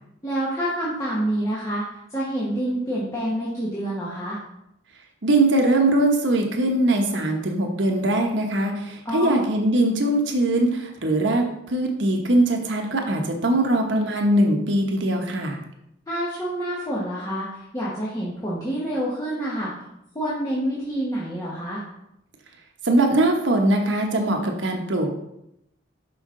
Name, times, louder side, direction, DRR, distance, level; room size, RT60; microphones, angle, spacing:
voice 1, 0.2-1.8 2.1-4.4 9.0-9.4 16.1-17.5 17.7-19.7 20.1-21.8, right 1 dB, 20° left, -8 dB, 1.2 m, -27 dB
voice 2, 5.2-15.6 22.8-25.1, right 1 dB, 75° right, 2 dB, 1.0 m, -21 dB
5.7 x 5.4 x 3.8 m, 0.81 s
head